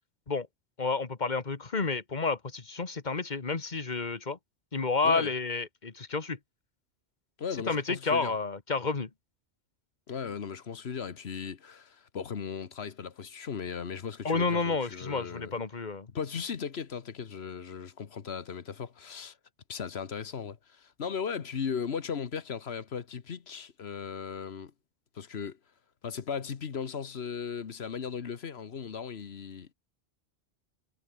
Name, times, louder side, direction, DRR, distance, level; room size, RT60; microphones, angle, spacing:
voice 1, 0.8-4.4 4.7-6.4 7.7-9.1 14.2-16.1, left 4 dB, 40° left, 1.7 m, -30 dB
voice 2, 7.4-8.4 10.1-15.5 16.1-19.4 19.7-24.7 25.1-25.6 26.0-29.7, left 6 dB, 70° left, 1.4 m, -37 dB
omnidirectional pair, 1.1 m